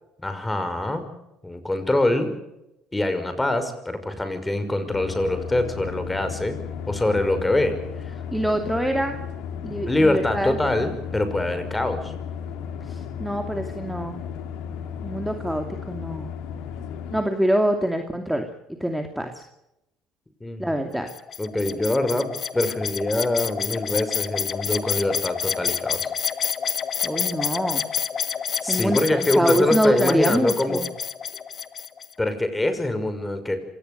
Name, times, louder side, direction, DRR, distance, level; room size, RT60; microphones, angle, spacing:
voice 1, 0.2-1.1 1.4-2.3 2.9-6.6 6.9-7.8 8.0-8.1 9.9-12.1 20.4-20.7 21.4-26.1 28.6-30.8 32.2-33.6, left 1 dB, 15° left, 9 dB, 5.7 m, -24 dB
sound 1, 4.9-17.2, left 7 dB, 80° left, 3.2 m, -34 dB
voice 2, 8.3-9.3 9.6-10.6 12.9-14.2 15.0-16.3 17.1-19.4 20.6-21.1 27.0-27.8 28.7-30.9, equal, 5° right, 5 dB, 2.7 m, -25 dB
sound 2, 21.1-32.1, left 7 dB, 45° left, 1.6 m, -28 dB
26.5 x 18.0 x 6.9 m, 0.89 s
supercardioid pair, 80°, 0 cm